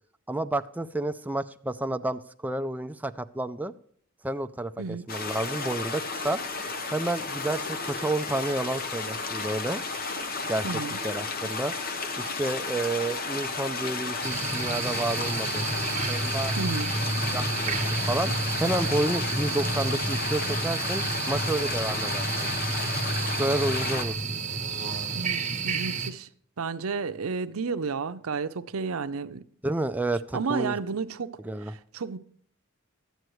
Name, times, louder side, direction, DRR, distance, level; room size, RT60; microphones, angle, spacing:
voice 1, 0.3-3.7 4.2-6.4 6.9-9.8 10.4-10.7 11.0-11.7 12.2-15.7 16.1-16.6 17.3-17.8 18.1-22.5 23.2-24.4 29.6-30.8 31.4-31.7, right 1 dB, 10° right, 0.4 m, -30 dB
sound 1, 5.1-24.0, left 3 dB, 45° left, 1.0 m, -33 dB
voice 2, 10.6-11.0 16.6-16.9 25.2-26.3 26.6-29.4 30.3-32.2, right 5 dB, 80° right, 0.6 m, -32 dB
sound 2, 14.2-26.1, right 3 dB, 35° right, 1.2 m, -30 dB
13.0 x 9.1 x 3.1 m
head